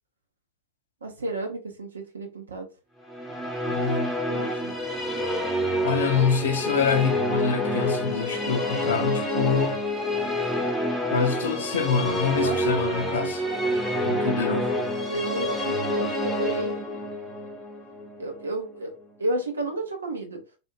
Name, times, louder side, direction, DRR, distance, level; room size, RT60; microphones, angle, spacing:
voice 1, 1.0-2.7 4.3-4.7 12.4-12.6 15.1-17.1 18.2-18.9 19.2-20.4, right 1 dB, 70° right, 0.7 m, -32 dB
Musical instrument, 3.1-18.5, equal, ahead, 0.9 m, -28 dB
voice 2, 3.7-4.1 5.8-9.8 11.1-13.4 14.0-14.8, left 6 dB, 65° left, 0.5 m, -26 dB
2.4 x 2.4 x 3.0 m
figure-of-eight pair, 90°, 0 cm